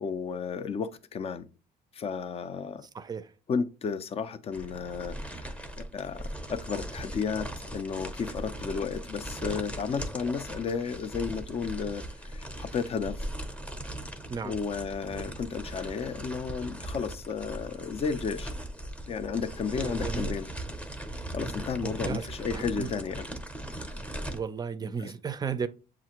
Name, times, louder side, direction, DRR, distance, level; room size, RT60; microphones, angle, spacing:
voice 1, 0.0-1.5 1.9-2.9 3.5-13.3 14.4-18.5 19.1-20.5 21.3-23.4 25.0-25.1, left 6 dB, 35° left, 0.5 m, -33 dB
voice 2, 2.8-3.3 14.3-14.6 19.8-20.3 21.8-22.3 22.5-22.9 24.3-25.7, right 6 dB, 25° right, 0.5 m, -34 dB
sound 1, 4.5-24.4, right 1 dB, 5° left, 0.8 m, -39 dB
7.2 x 2.5 x 2.9 m
cardioid pair, 110°, 17 cm